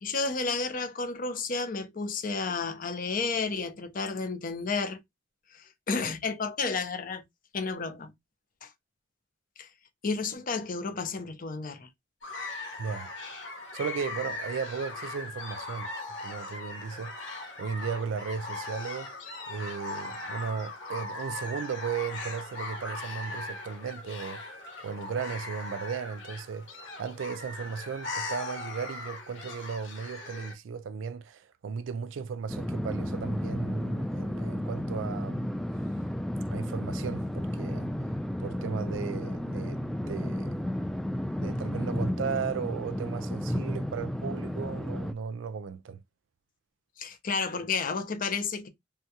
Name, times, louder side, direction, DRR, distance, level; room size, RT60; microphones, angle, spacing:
voice 1, 0.0-5.0 5.5-7.2 7.5-8.1 8.6-8.7 9.6-9.7 10.0-11.9 47.0-48.7, left 4 dB, 45° left, 0.6 m, -31 dB
sound 1, 12.2-30.5, left 2 dB, 80° left, 1.1 m, -39 dB
voice 2, 12.8-13.1 13.7-15.9 16.2-19.1 19.5-35.5 36.5-37.9 38.4-40.6 41.4-46.0, right 6 dB, 80° right, 0.4 m, -36 dB
sound 2, 32.5-45.1, left 1 dB, ahead, 0.3 m, -33 dB
3.4 x 2.3 x 2.8 m
head